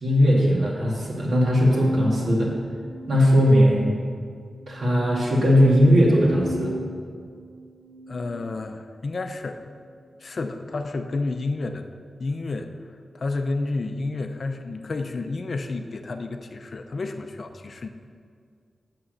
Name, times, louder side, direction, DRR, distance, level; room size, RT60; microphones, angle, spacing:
voice 1, 0.0-2.5 3.1-3.9 4.7-6.7, equal, 60° right, -4 dB, 2.3 m, -19 dB
Bowed string instrument, 1.7-4.1 4.5-5.3 6.3-8.8, right 1 dB, 80° right, 1.3 m, -36 dB
voice 2, 8.1-9.7 10.2-11.9 12.2-12.7 13.1-17.9, left 3 dB, 45° left, 6 dB, 0.5 m, -30 dB
8.6 x 7.7 x 6.4 m, 2.2 s
wide cardioid pair, 175°, 0 cm